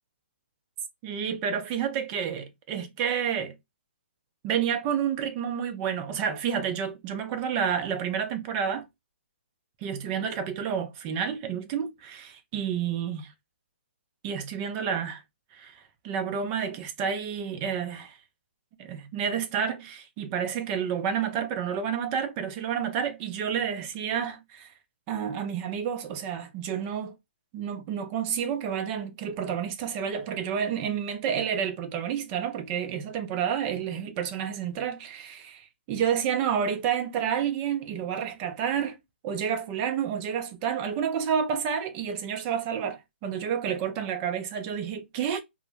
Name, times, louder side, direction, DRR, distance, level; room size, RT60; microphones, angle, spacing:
voice 1, 1.0-3.5 4.4-8.9 9.8-13.3 14.2-15.2 15.5-18.2 18.8-24.7 25.1-27.1 27.5-39.0 39.2-45.4, right 8 dB, 25° right, 0.4 m, -30 dB
2.2 x 2.0 x 2.9 m
hypercardioid pair, 145°, 7 cm